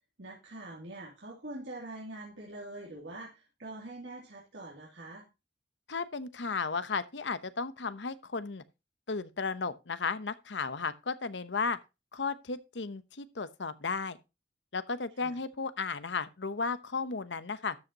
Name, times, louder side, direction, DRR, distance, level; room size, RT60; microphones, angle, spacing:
voice 1, 0.2-5.3 15.2-15.3, right 2 dB, 70° right, 2.9 m, -44 dB
voice 2, 5.9-8.6 9.1-11.8 12.1-14.2 14.7-17.8, left 4 dB, 80° left, 0.9 m, -34 dB
13.0 x 8.0 x 2.9 m
head